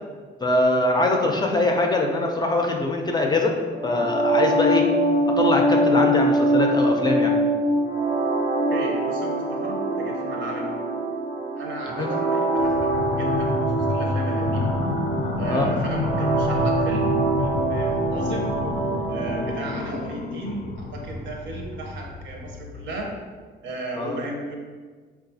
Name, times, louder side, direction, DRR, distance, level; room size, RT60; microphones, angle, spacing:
voice 1, 0.4-3.5 3.8-4.9 5.4-7.3 12.0-12.1 15.5-15.7 24.0-24.2, left 2 dB, 20° left, 1 dB, 0.4 m, -22 dB
sound 1, 3.8-19.7, right 1 dB, 35° right, 0.6 m, -24 dB
voice 2, 8.7-10.8 11.5-14.8 15.4-18.5 19.1-23.2 23.6-24.6, right 2 dB, 70° right, 0 dB, 0.7 m, -35 dB
sound 2, 12.6-23.1, left 3 dB, 85° left, 0.4 m, -29 dB
3.9 x 2.3 x 2.7 m, 1.5 s
cardioid pair, 90°, 20 cm